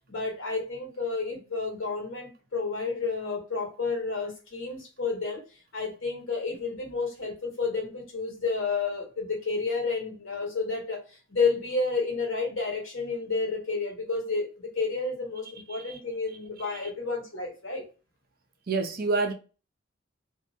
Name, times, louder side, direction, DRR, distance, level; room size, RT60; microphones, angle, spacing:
voice 1, 0.1-5.4 5.7-11.0 11.3-17.8, left 4 dB, 90° left, 1.2 m, -30 dB
voice 2, 15.7-16.0 16.6-16.8 18.7-19.3, right 3 dB, 50° right, 0.5 m, -28 dB
2.6 x 2.0 x 2.6 m
head